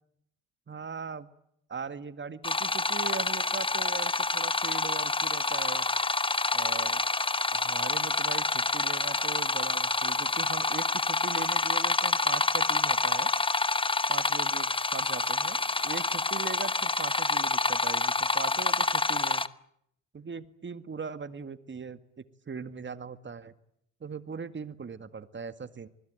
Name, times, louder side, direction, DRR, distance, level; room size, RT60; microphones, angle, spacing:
voice 1, 0.7-1.3 1.7-5.9 6.5-7.0 7.5-13.3 14.1-15.6 15.8-19.4 20.1-23.5 24.0-25.9, right 5 dB, 35° right, 12 dB, 1.9 m, -40 dB
sound 1, 2.4-19.5, left 3 dB, 15° left, 1.0 m, -27 dB
26.5 x 20.5 x 9.1 m, 0.75 s
supercardioid pair, 60°, 33 cm